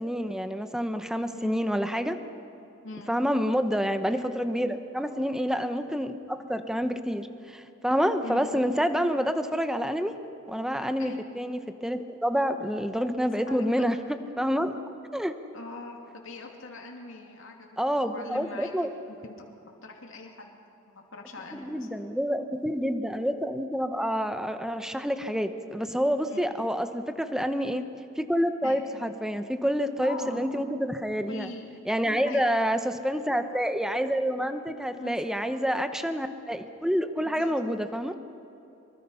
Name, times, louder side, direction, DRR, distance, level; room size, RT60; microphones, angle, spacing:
voice 1, 0.0-2.2 3.1-10.1 10.5-14.8 15.1-15.3 17.8-18.9 21.5-27.8 28.2-31.5 31.9-38.1, equal, 5° right, 9 dB, 0.9 m, -28 dB
voice 2, 1.2-1.7 2.8-3.1 8.2-8.5 11.0-11.2 13.5-13.8 15.5-19.5 19.8-20.6 20.9-21.9 26.2-26.5 28.6-28.8 30.0-30.4 31.3-31.7 32.0-32.4 34.9-35.2 37.2-37.6, left 2 dB, 65° left, 1 dB, 2.7 m, -42 dB
24.0 x 24.0 x 5.7 m, 2.8 s
head